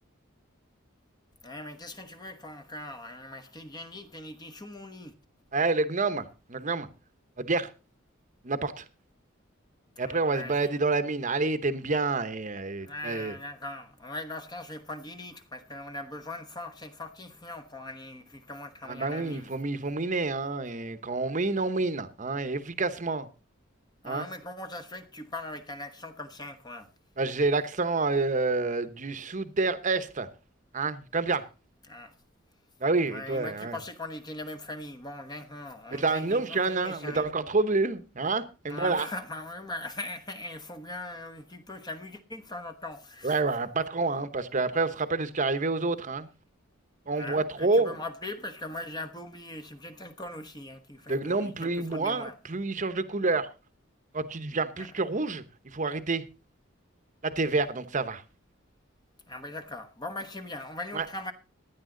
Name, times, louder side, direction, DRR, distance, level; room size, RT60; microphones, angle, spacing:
voice 1, 1.4-5.1 10.0-10.8 12.8-19.5 24.0-26.9 31.9-32.2 33.1-37.3 38.7-43.4 47.2-52.4 54.8-54.9 59.3-61.3, left 2 dB, 20° left, 1.1 m, -40 dB
voice 2, 5.5-6.9 7.4-7.7 8.4-8.8 10.0-13.4 18.9-23.3 24.0-24.3 27.2-30.3 30.7-31.5 32.8-33.8 35.9-39.1 43.2-46.3 47.1-48.0 51.1-53.5 54.1-56.3 57.2-58.2 60.9-61.1, right 3 dB, 40° right, 1.0 m, -28 dB
16.0 x 10.5 x 3.9 m
head